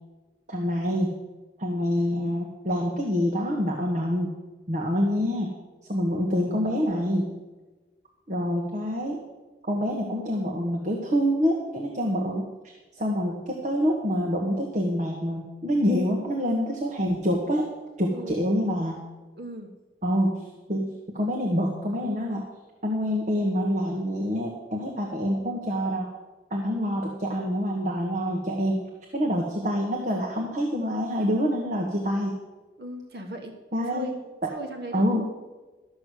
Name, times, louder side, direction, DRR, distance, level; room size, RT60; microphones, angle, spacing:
voice 1, 0.5-1.1 1.6-4.3 4.7-5.5 5.9-7.3 8.3-9.2 9.6-12.5 12.9-17.7 18.0-19.0 20.0-22.5 22.8-26.1 26.5-28.8 29.1-32.4 33.7-34.1 34.9-35.3, equal, 40° right, 0 dB, 1.4 m, -26 dB
voice 2, 18.1-18.4 19.3-19.7 32.8-33.5 33.9-34.2 34.5-35.3, right 1 dB, 60° right, 4 dB, 1.3 m, -38 dB
13.0 x 6.2 x 8.2 m, 1.2 s
head